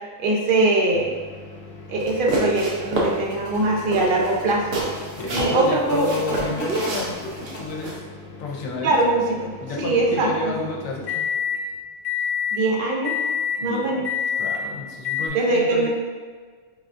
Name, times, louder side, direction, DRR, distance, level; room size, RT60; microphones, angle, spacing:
voice 1, 0.2-1.1 1.9-4.7 5.3-6.1 6.6-6.8 8.8-9.5 9.8-10.5 12.5-13.2 13.6-14.1 15.3-15.9, right 2 dB, 60° right, -1 dB, 0.6 m, -22 dB
sound 1, 0.9-11.6 12.0-12.6 13.0-13.6 14.0-14.6 15.0-15.3, left 7 dB, 55° left, 0.7 m, -32 dB
sound 2, 2.0-3.2 3.5-3.7 3.9-5.6 6.0-8.0, right 1 dB, 75° right, 1.1 m, -28 dB
sound 3, 2.8-8.0, left 1 dB, 25° left, 1.0 m, -36 dB
voice 2, 5.2-8.0 8.4-9.0 9.6-11.1 13.6-14.1 14.4-15.9, left 3 dB, 75° left, -1 dB, 1.0 m, -31 dB
5.1 x 2.3 x 2.5 m, 1.5 s
omnidirectional pair, 1.5 m